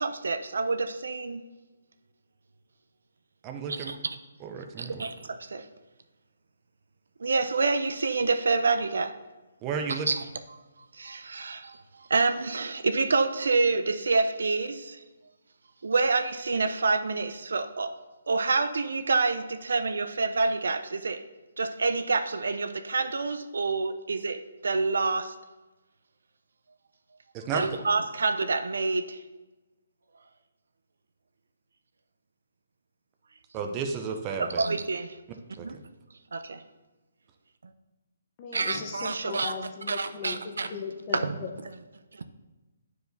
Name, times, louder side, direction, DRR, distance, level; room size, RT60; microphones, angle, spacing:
voice 1, 0.0-1.4 3.7-4.0 4.8-5.6 7.2-9.1 10.1-10.2 11.0-11.8 12.1-15.0 15.8-17.9 18.3-21.2 21.6-25.3 27.5-29.2 34.4-35.1 35.6-35.7 36.3-36.6 38.5-39.5 39.9-40.7 41.1-41.4 42.1-42.2, right 3 dB, 80° right, 9 dB, 0.5 m, -27 dB
voice 2, 3.4-3.9 4.4-5.0 9.6-10.1 27.3-27.6 33.5-34.6 35.6-35.8, right 5 dB, 15° right, 4 dB, 0.5 m, -33 dB
voice 3, 38.4-40.4 40.7-41.5, left 5 dB, 25° left, 2 dB, 0.7 m, -37 dB
9.7 x 4.7 x 2.6 m, 1.2 s
hypercardioid pair, 170°, 0 cm